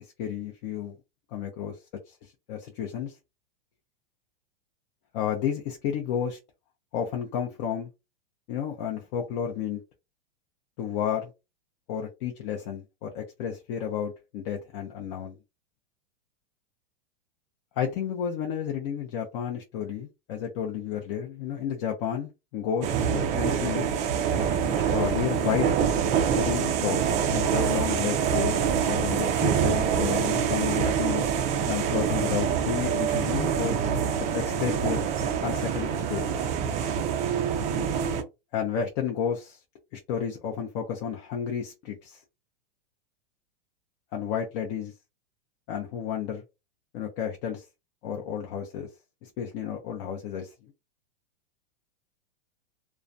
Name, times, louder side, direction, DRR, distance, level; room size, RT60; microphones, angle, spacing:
voice 1, 0.2-1.0 1.3-1.8 2.1-3.2 5.1-6.4 6.9-7.9 8.5-9.8 10.8-11.3 11.9-15.4 17.8-23.9 24.9-25.7 26.3-31.3 31.7-33.8 34.3-35.0 35.4-36.2 38.5-39.6 39.9-42.2 44.1-44.9 45.7-46.4 46.9-47.7 48.0-48.9 49.2-50.7, left 8 dB, 40° left, 0.5 m, -31 dB
sound 1, 22.8-38.2, right 7 dB, 25° right, 0.3 m, -26 dB
2.3 x 2.1 x 2.5 m
hypercardioid pair, 135°, 29 cm